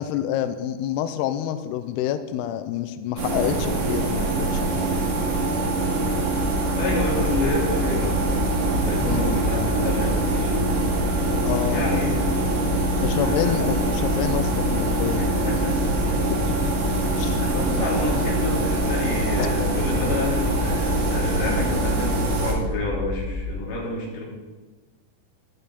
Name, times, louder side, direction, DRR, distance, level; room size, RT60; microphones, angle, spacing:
voice 1, 0.0-4.8 9.0-9.2 11.5-11.9 13.0-15.2 16.4-16.7 17.1-17.5 19.4-19.5, left 11 dB, 90° left, 10 dB, 2.4 m, -28 dB
sound 1, 3.2-22.5, right 2 dB, 85° right, 4.7 m, -24 dB
sound 2, 6.2-23.5, left 2 dB, 20° right, 2.2 m, -30 dB
voice 2, 6.8-10.7 11.7-12.3 12.8-12.9 13.1-13.7 15.1-16.2 17.4-24.2, left 2 dB, 60° left, -4 dB, 4.6 m, -29 dB
12.0 x 10.5 x 4.2 m, 1.3 s
omnidirectional pair, 5.2 m